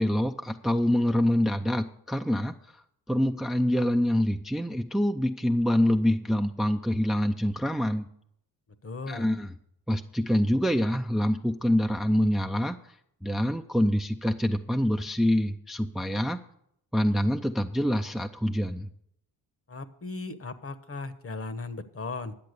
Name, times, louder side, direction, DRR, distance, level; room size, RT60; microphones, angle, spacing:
voice 1, 0.0-2.5 3.1-8.1 9.1-9.5 9.9-12.8 13.2-16.4 16.9-18.9, equal, ahead, 6 dB, 0.6 m, -25 dB
voice 2, 8.8-9.3 19.7-22.3, left 3 dB, 35° left, 11 dB, 1.2 m, -37 dB
11.0 x 7.6 x 6.6 m, 0.71 s
supercardioid pair, 60°, 41 cm